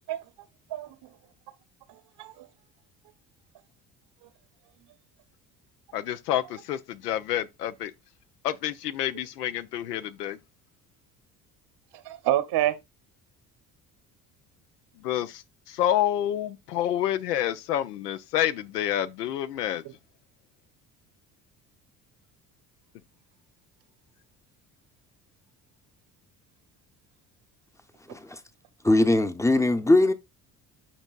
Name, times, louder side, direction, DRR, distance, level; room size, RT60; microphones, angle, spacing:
voice 1, 0.7-1.1 1.9-2.5 4.2-4.3 11.9-12.8, right 13 dB, 55° right, 1.0 m, -28 dB
voice 2, 5.9-7.9 8.4-10.4 15.0-15.4 15.7-19.8, left 11 dB, 85° left, 0.6 m, -28 dB
voice 3, 28.1-28.4 28.8-30.1, left 2 dB, 5° left, 0.7 m, -21 dB
8.8 x 5.3 x 2.4 m
hypercardioid pair, 55°, 47 cm